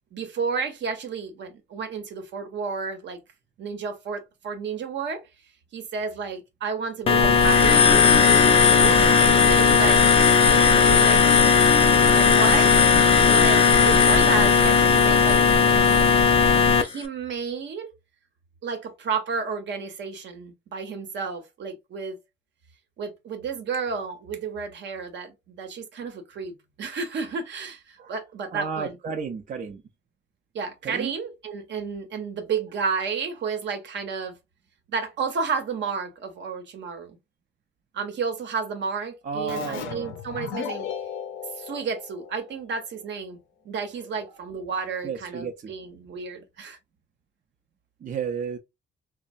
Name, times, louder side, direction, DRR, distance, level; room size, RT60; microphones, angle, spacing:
voice 1, 0.1-3.2 3.6-5.2 5.7-11.3 12.1-15.4 15.7-16.2 16.8-17.9 18.6-22.2 23.0-29.0 30.5-34.3 34.9-37.2 37.9-40.9 41.5-43.4 43.6-46.8, right 5 dB, 70° right, 0.8 m, -31 dB
sound 1, 7.1-16.8, left 6 dB, 30° left, 0.4 m, -17 dB
voice 2, 28.5-29.8 30.8-31.1 39.2-40.1 45.0-45.7 48.0-48.6, right 5 dB, 45° right, 0.5 m, -32 dB
Keyboard (musical), 39.5-42.9, left 9 dB, 90° left, 0.5 m, -36 dB
3.1 x 2.0 x 2.5 m
cardioid pair, 105°, 19 cm